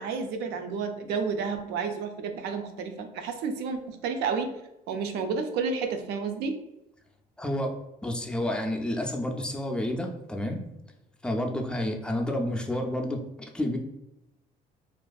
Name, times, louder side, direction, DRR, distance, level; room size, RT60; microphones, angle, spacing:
voice 1, 0.0-4.5 4.9-6.6, right 5 dB, 80° right, 6 dB, 0.4 m, -31 dB
voice 2, 7.4-7.7 8.0-10.6 11.2-13.2 13.5-13.8, left 1 dB, 5° left, 2 dB, 0.3 m, -29 dB
2.5 x 2.4 x 2.3 m, 0.89 s
cardioid pair, 110°, 17 cm